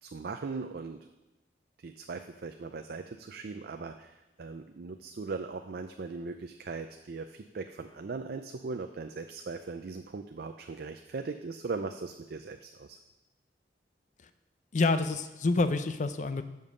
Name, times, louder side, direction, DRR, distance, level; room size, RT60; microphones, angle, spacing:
voice 1, 0.0-1.1 1.8-13.0, right 4 dB, 60° right, 6 dB, 0.4 m, -39 dB
voice 2, 14.7-16.4, left 3 dB, 45° left, 10 dB, 0.5 m, -27 dB
7.3 x 5.3 x 6.5 m, 1.0 s
head